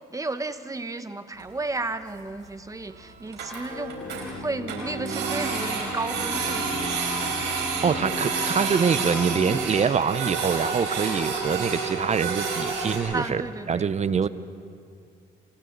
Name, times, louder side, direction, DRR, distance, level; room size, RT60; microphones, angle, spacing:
voice 1, 0.1-4.0 4.3-7.0 13.1-13.9, right 2 dB, 20° right, 10 dB, 1.3 m, -33 dB
Printer, 1.4-1.7 2.1-2.2 2.5-2.6 2.9-3.0 3.2-4.2 4.7-13.0, right 5 dB, 80° right, 5.3 m, -29 dB
sound 1, 3.7-9.6, left 1 dB, 50° left, 5.7 m, -36 dB
voice 2, 7.8-13.4 13.7-14.3, right 6 dB, 40° right, 15 dB, 0.8 m, -25 dB
29.0 x 26.0 x 4.1 m, 2.4 s
supercardioid pair, 75°, 18 cm